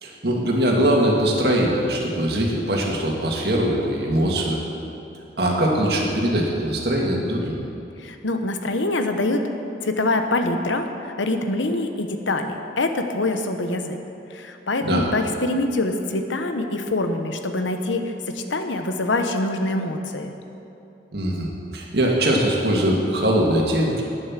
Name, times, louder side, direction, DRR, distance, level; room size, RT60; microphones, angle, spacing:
voice 1, 0.0-4.6 5.4-7.6 14.8-15.1 21.1-24.0, right 1 dB, 60° right, -1 dB, 2.2 m, -21 dB
voice 2, 8.0-9.4 9.8-14.0 14.3-20.3, left 2 dB, 90° left, 6 dB, 1.0 m, -25 dB
11.0 x 9.4 x 7.5 m, 2.8 s
head